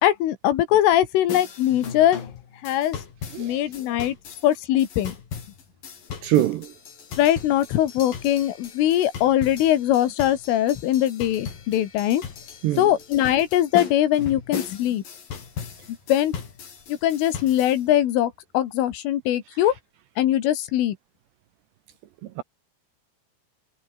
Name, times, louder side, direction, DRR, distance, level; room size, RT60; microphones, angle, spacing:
voice 1, 0.0-2.2 2.6-3.0 3.4-4.2 4.4-5.1 7.2-12.2 12.8-15.0 16.1-16.3 16.9-19.7 20.2-21.0, left 12 dB, 75° left, 4.4 m, -21 dB
sound 1, 1.3-17.8, left 6 dB, 45° left, 5.0 m, -38 dB
voice 2, 6.2-6.7 12.6-12.9 22.4-22.5, right 15 dB, 75° right, 2.7 m, -23 dB
omnidirectional pair, 5.9 m